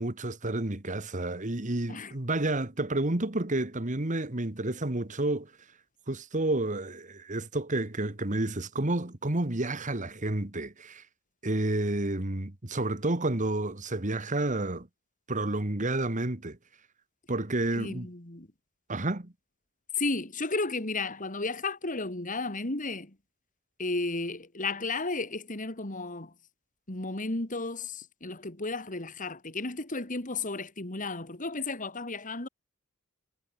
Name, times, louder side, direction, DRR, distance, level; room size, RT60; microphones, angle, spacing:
voice 1, 0.0-5.5 6.1-11.0 11.4-14.9 15.3-16.6 17.3-18.1 18.9-19.3, right 2 dB, 35° right, 1.7 m, -30 dB
voice 2, 17.7-18.5 20.0-23.1 23.8-26.3 26.9-32.5, left 3 dB, 40° left, 2.8 m, -33 dB
head